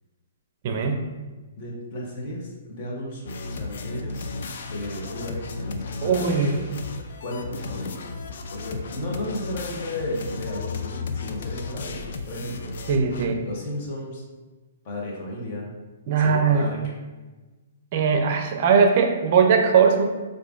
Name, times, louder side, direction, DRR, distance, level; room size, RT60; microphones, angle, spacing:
voice 1, 0.6-1.1 6.0-6.5 12.9-13.4 16.1-16.7 17.9-20.0, right 6 dB, 50° right, 4 dB, 0.4 m, -20 dB
voice 2, 1.6-6.6 7.2-8.1 8.5-12.7 13.4-14.2 14.8-15.7 16.2-16.8, left 1 dB, 45° left, -2 dB, 1.0 m, -34 dB
sound 1, 3.3-13.3, left 3 dB, 65° left, 0.3 m, -34 dB
4.6 x 2.5 x 2.4 m, 1.2 s
hypercardioid pair, 130°, 0 cm